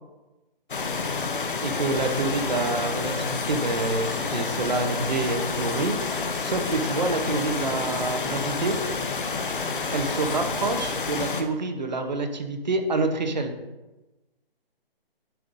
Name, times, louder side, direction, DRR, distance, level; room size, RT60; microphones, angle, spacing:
sound 1, 0.7-11.4, left 4 dB, 60° left, 0.9 m, -29 dB
voice 1, 1.6-5.9 6.4-8.8 9.9-13.5, right 3 dB, 45° right, 6 dB, 0.8 m, -27 dB
sound 2, 3.2-10.4, left 3 dB, 30° left, 0.9 m, -48 dB
10.0 x 5.3 x 2.6 m, 1.1 s
hypercardioid pair, 175°, 30 cm